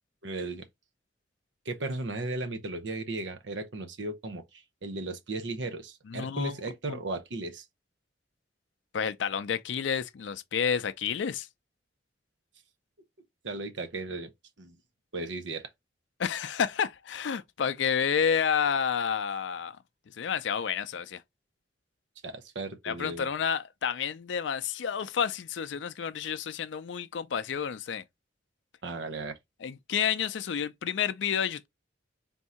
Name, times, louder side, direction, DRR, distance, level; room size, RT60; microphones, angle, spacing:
voice 1, 0.2-0.6 1.7-7.6 13.4-14.3 14.6-14.8 15.1-15.7 22.2-23.3 28.8-29.4, right 2 dB, 75° right, 0.7 m, -36 dB
voice 2, 6.1-6.5 6.9-7.0 8.9-11.5 16.2-19.8 20.2-21.2 22.8-28.0 29.6-31.7, left 7 dB, 75° left, 0.4 m, -30 dB
3.6 x 2.7 x 4.3 m
head